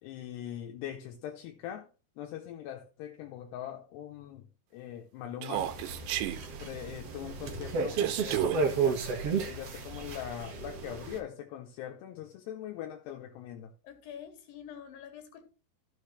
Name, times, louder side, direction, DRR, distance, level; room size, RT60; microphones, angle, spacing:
voice 1, 0.0-1.9 2.2-4.4 4.7-5.7 6.6-9.1 9.4-13.7, left 10 dB, 80° left, 2.8 m, -42 dB
Human voice, 5.4-6.4 8.0-8.6, right 13 dB, 85° right, 2.9 m, -32 dB
sound 1, 5.5-11.2, right 5 dB, 55° right, 1.7 m, -33 dB
voice 2, 13.8-15.4, left 8 dB, 65° left, 3.2 m, -46 dB
13.5 x 6.6 x 3.2 m
omnidirectional pair, 4.9 m